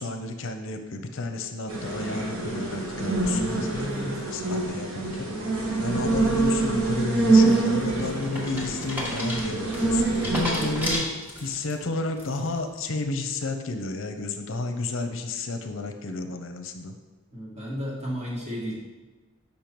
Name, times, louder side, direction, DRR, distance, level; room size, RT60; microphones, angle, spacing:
voice 1, 0.0-3.7 4.3-5.3 5.8-11.1 11.4-16.9, left 3 dB, 65° left, 6 dB, 0.6 m, -32 dB
sound 1, 1.7-11.0, right 3 dB, 75° right, 1.4 m, -25 dB
voice 2, 3.3-4.2 17.3-18.7, equal, 30° right, -5 dB, 2.0 m, -33 dB
sound 2, 7.5-11.7 12.2-12.6, left 1 dB, 10° right, 1.3 m, -33 dB
6.8 x 5.4 x 4.5 m, 1.2 s
head